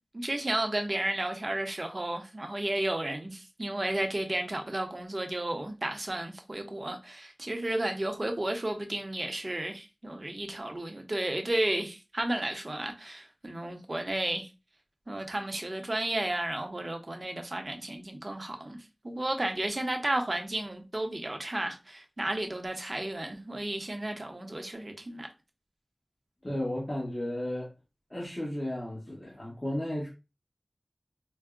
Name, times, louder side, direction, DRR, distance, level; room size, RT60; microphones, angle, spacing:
voice 1, 0.1-14.5 15.1-18.8 19.0-25.3, right 1 dB, 45° right, 0.7 m, -33 dB
voice 2, 26.4-27.7 28.1-30.1, left 1 dB, 30° left, 1.1 m, -34 dB
4.5 x 2.0 x 2.4 m
wide cardioid pair, 50°, 0 cm